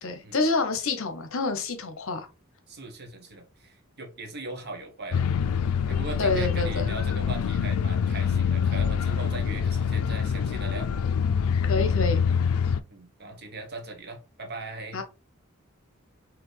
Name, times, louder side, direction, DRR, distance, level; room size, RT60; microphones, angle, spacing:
voice 1, 0.0-2.3 6.2-6.9 11.6-12.2 14.9-15.0, left 3 dB, 65° left, 0.8 m, -27 dB
voice 2, 2.7-5.3 5.9-10.9 12.9-15.0, right 2 dB, 50° right, 1.0 m, -39 dB
sound 1, 5.1-12.8, left 6 dB, 90° left, 0.4 m, -25 dB
4.2 x 2.9 x 3.2 m
head